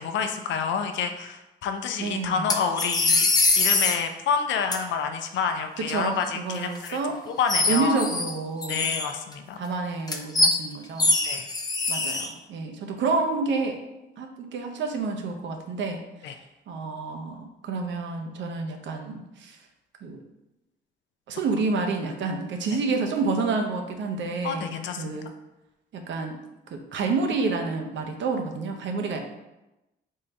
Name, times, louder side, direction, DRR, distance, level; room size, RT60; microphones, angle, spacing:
voice 1, 0.0-3.3 3.6-7.0 7.3-8.0 8.7-9.6 11.2-11.5 16.2-16.3 24.4-25.0, left 6 dB, 70° left, 6 dB, 0.5 m, -28 dB
voice 2, 2.0-2.6 5.8-7.2 7.7-8.9 9.6-11.1 11.9-13.8 14.2-16.3 16.7-19.6 20.0-20.2 21.3-24.7 25.0-25.3 25.9-26.4 26.7-29.2, right 4 dB, 70° right, 4 dB, 0.7 m, -29 dB
sound 1, 2.5-4.0 4.7-4.8 6.7-6.9 7.5-8.3 8.6-9.3 10.1-10.6 11.0-12.3, left 3 dB, 20° left, 0.5 m, -23 dB
3.7 x 2.7 x 4.4 m, 0.97 s
cardioid pair, 90°, 20 cm